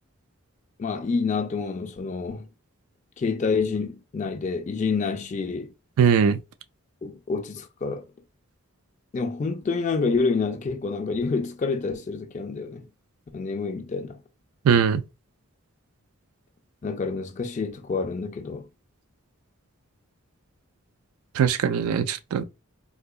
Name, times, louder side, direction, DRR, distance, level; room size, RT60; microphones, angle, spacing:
voice 1, 0.8-2.5 3.2-5.7 7.0-8.1 9.1-12.9 13.3-14.2 16.8-18.7, left 4 dB, 35° left, 0.3 m, -28 dB
voice 2, 6.0-6.4 14.7-15.0 21.4-22.4, right 7 dB, 90° right, 0.4 m, -20 dB
3.7 x 2.7 x 2.3 m
head